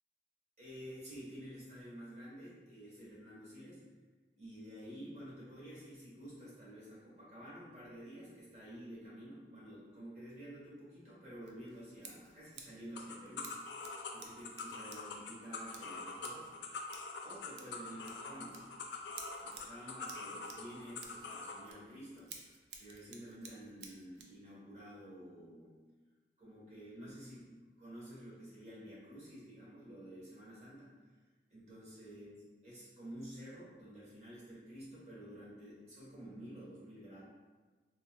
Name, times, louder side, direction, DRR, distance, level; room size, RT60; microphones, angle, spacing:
voice 1, 0.6-3.8 4.4-13.5 14.1-16.5 17.2-18.6 19.4-25.7 26.4-30.9 31.5-32.3 32.6-37.2, equal, 40° right, -8 dB, 1.2 m, -50 dB
Scissors, 11.4-24.4, right 5 dB, 65° right, 0.4 m, -56 dB
sound 1, 12.9-21.6, left 4 dB, 80° left, 0.4 m, -45 dB
3.5 x 2.7 x 2.3 m, 1.3 s
head